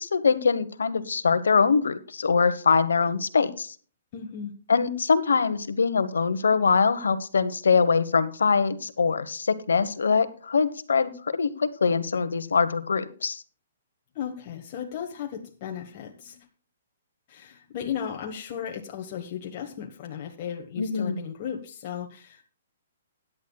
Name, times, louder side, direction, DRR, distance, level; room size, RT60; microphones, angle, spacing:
voice 1, 0.0-3.7 4.7-13.4 20.8-21.2, left 5 dB, 85° left, 13 dB, 1.1 m, -23 dB
voice 2, 4.1-4.5 14.1-16.4 17.3-22.4, left 8 dB, 45° left, 3 dB, 1.3 m, -35 dB
16.5 x 10.5 x 2.3 m, 0.40 s
hypercardioid pair, 140°, 0 cm